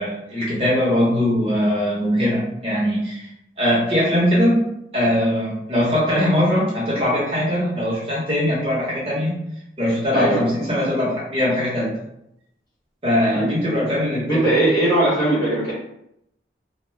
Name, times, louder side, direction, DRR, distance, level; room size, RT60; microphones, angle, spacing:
voice 1, 0.0-3.3 3.6-4.6 4.9-9.4 9.8-11.9 13.0-14.5, equal, 35° right, -6 dB, 1.0 m, -21 dB
voice 2, 10.1-10.5 13.3-13.5 14.3-15.7, right 1 dB, 25° left, -11 dB, 0.8 m, -19 dB
2.3 x 2.2 x 3.1 m, 0.80 s
head